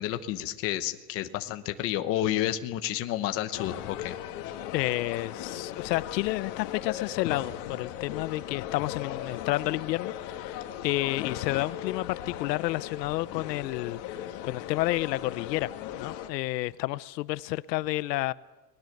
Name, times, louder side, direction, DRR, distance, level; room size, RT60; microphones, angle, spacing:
voice 1, 0.0-4.1, left 13 dB, 25° left, 1.0 m, -30 dB
sound 1, 3.5-16.3, left 11 dB, 45° left, 2.4 m, -38 dB
voice 2, 4.7-18.3, left 18 dB, 80° left, 0.8 m, -30 dB
29.5 x 20.0 x 6.6 m
supercardioid pair, 180°, 50 cm